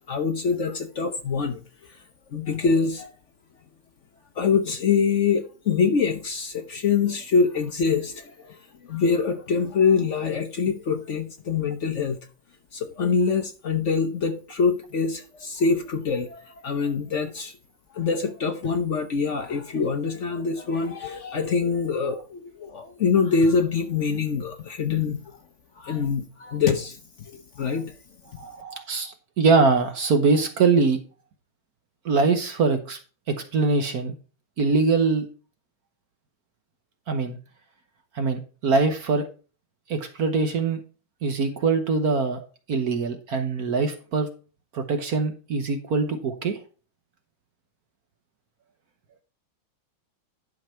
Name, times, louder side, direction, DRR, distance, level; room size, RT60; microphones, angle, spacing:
voice 1, 0.1-1.6 2.3-3.1 4.4-12.2 12.7-17.5 17.9-25.2 25.8-27.9, left 5 dB, 65° left, 0.7 m, -24 dB
voice 2, 28.4-31.0 32.0-33.0 33.3-34.1 34.6-35.3 37.1-37.4 38.1-39.3 39.9-40.8 41.2-42.4 42.7-44.3 44.7-46.6, right 4 dB, 55° right, 1.3 m, -23 dB
11.0 x 5.3 x 4.4 m
omnidirectional pair, 2.3 m